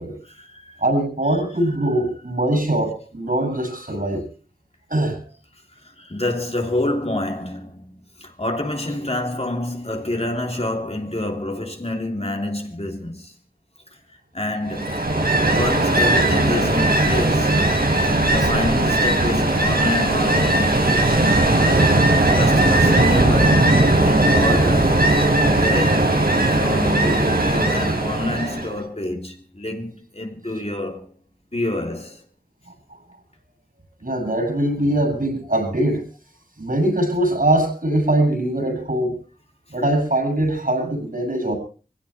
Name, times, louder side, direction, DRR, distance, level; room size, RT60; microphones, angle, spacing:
voice 1, 0.2-0.8 5.8-13.3 14.3-15.0 15.5-17.6 18.3-21.2 22.1-25.1 25.5-26.3 26.6-31.1 31.5-32.2, left 1 dB, 45° left, 3.4 m, -27 dB
voice 2, 0.8-4.3 4.9-5.2 34.0-36.0 36.6-39.2 39.7-41.5, right 1 dB, 70° right, 7.9 m, -22 dB
Ocean, 14.7-28.8, right 2 dB, 85° right, 3.6 m, -18 dB
24.0 x 16.5 x 3.4 m
wide cardioid pair, 40°, 15 cm